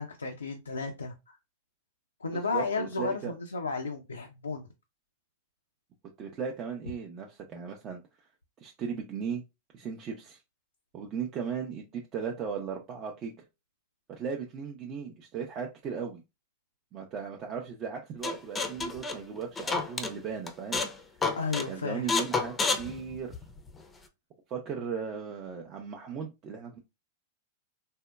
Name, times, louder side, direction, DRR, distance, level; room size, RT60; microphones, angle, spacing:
voice 1, 0.0-1.4 2.2-4.7 21.4-22.0, left 4 dB, 85° left, 0.4 m, -33 dB
voice 2, 2.3-3.3 6.2-8.0 8.6-9.4 9.7-10.4 10.9-13.3 14.1-16.2 16.9-20.8 21.7-23.4 24.5-26.8, right 6 dB, 35° right, 0.5 m, -37 dB
sound 1, 18.2-20.1 20.5-21.0 21.2-21.7 22.1-23.7, left 4 dB, 15° left, 0.5 m, -29 dB
3.5 x 2.1 x 2.2 m
figure-of-eight pair, 95°, 0 cm